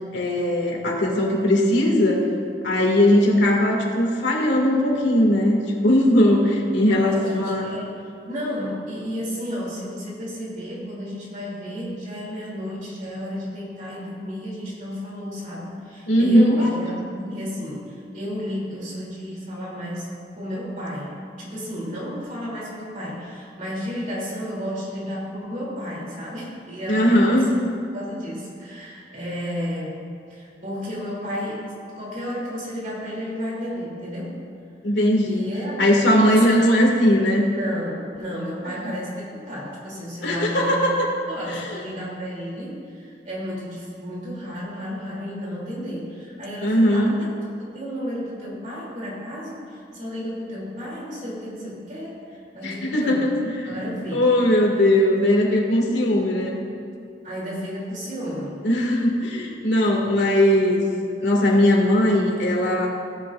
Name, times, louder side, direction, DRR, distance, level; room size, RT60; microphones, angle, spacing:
voice 1, 0.1-2.3 2.6-7.7 16.1-16.7 26.9-27.5 34.8-35.5 35.8-37.4 38.8-38.9 40.2-41.1 41.5-41.8 46.6-47.2 52.6-53.8 54.1-56.6 58.6-60.8 61.2-62.9, left 1 dB, 85° left, -1 dB, 2.3 m, -19 dB
voice 2, 6.9-27.6 27.9-30.0 30.3-34.4 35.2-36.7 37.4-40.9 41.3-47.3 47.6-53.3 53.6-54.2 57.2-58.7, equal, 45° right, -5 dB, 3.1 m, -32 dB
17.0 x 11.0 x 2.6 m, 2.4 s
head